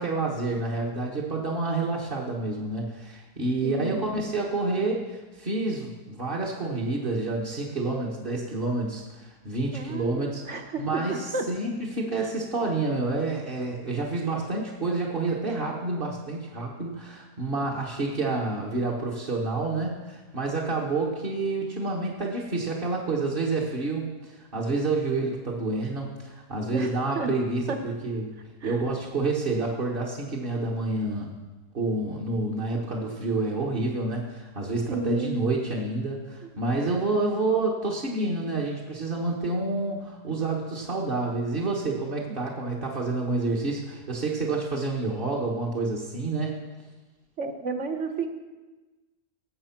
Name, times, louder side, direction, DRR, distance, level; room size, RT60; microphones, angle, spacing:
voice 1, 0.0-10.4 10.8-28.3 28.6-31.3 31.7-46.5, right 3 dB, 35° right, -4 dB, 1.6 m, -28 dB
voice 2, 3.6-4.0 9.7-11.5 12.2-12.3 26.7-27.3 27.7-27.8 28.6-28.9 34.9-35.5 36.4-36.6 47.4-48.3, right 3 dB, 50° right, 6 dB, 1.4 m, -32 dB
17.5 x 7.8 x 5.9 m, 1.2 s
omnidirectional pair, 1.7 m